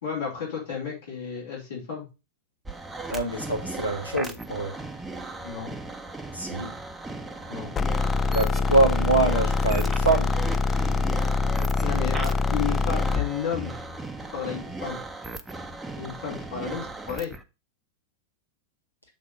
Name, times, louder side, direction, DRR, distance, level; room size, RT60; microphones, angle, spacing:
voice 1, 0.0-2.0 5.4-5.7 7.5-7.7 11.8-13.8 14.3-15.0 16.0-17.3, left 7 dB, 65° left, 4.0 m, -32 dB
sound 1, 2.6-17.4, right 2 dB, 10° right, 0.7 m, -37 dB
voice 2, 3.1-4.8 6.3-6.7 8.3-10.3, right 2 dB, 90° left, 1.3 m, -24 dB
sound 2, 7.8-13.3, left 3 dB, 20° left, 0.4 m, -24 dB
7.4 x 3.6 x 5.7 m
figure-of-eight pair, 90°, 0 cm